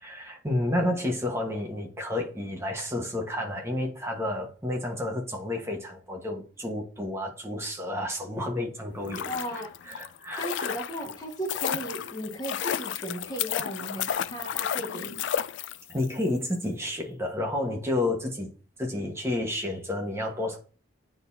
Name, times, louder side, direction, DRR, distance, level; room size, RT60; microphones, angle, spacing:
voice 1, 0.0-9.3 9.9-10.7 15.9-18.5 18.8-20.6, left 1 dB, 15° right, 1 dB, 1.3 m, -30 dB
sound 1, 8.9-16.1 16.4-16.5, left 9 dB, 65° left, 0.3 m, -32 dB
voice 2, 9.3-9.7 10.4-15.5, right 1 dB, 20° left, 0 dB, 1.2 m, -36 dB
9.1 x 4.1 x 2.8 m, 0.38 s
head